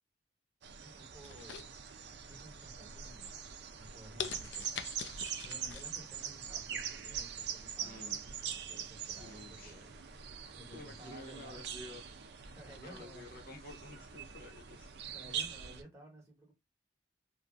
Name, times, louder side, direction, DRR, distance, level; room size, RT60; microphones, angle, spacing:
sound 1, 0.6-15.8, right 8 dB, 65° right, 0.4 m, -43 dB
voice 1, 0.8-1.7 2.2-3.4 3.7-4.9 5.4-9.9 10.4-11.6 12.4-13.2 14.4-14.5 15.1-16.5, equal, 15° right, 1.2 m, -55 dB
sound 2, 1.2-2.3 2.7-3.1 3.6-3.7 4.2-5.9 6.3-6.4, left 8 dB, 75° left, 0.4 m, -43 dB
voice 2, 7.8-8.2 9.2-9.8 10.7-12.0 12.8-14.9, left 1 dB, 55° left, 0.8 m, -50 dB
2.9 x 2.4 x 2.4 m
head